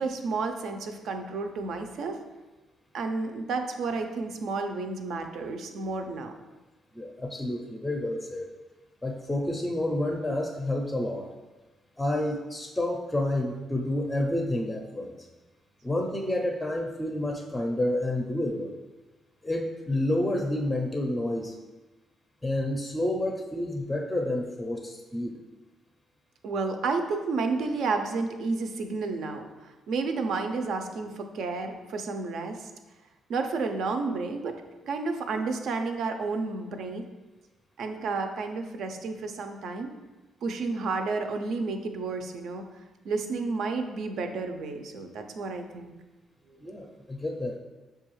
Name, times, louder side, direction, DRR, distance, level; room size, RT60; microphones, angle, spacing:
voice 1, 0.0-2.2 2.9-6.3 26.4-32.7 33.3-37.0 37.8-39.9 40.4-42.6 43.0-45.9, right 4 dB, 70° right, 6 dB, 0.4 m, -31 dB
voice 2, 6.9-8.5 9.0-11.3 12.0-15.2 15.8-18.7 19.4-21.5 22.4-25.3 46.6-47.6, left 1 dB, 10° left, 1 dB, 0.5 m, -29 dB
6.5 x 2.3 x 3.1 m, 1.2 s
cardioid pair, 90°, 0 cm